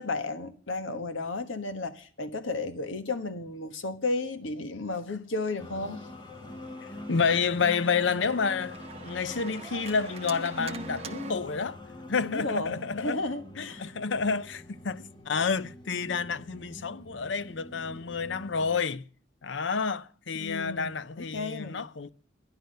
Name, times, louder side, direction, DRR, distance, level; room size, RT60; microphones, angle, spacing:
voice 1, 0.0-6.0 12.2-13.9 20.4-21.8, left 3 dB, 80° left, 1.4 m, -33 dB
Organ, 5.5-11.3, right 3 dB, 30° right, 0.8 m, -44 dB
sound 1, 5.6-18.8, left 1 dB, 25° left, 1.5 m, -45 dB
voice 2, 6.8-8.8 9.0-11.8 12.1-13.2 13.6-19.1 19.4-22.1, left 5 dB, 65° left, 0.6 m, -29 dB
12.0 x 10.5 x 6.6 m
head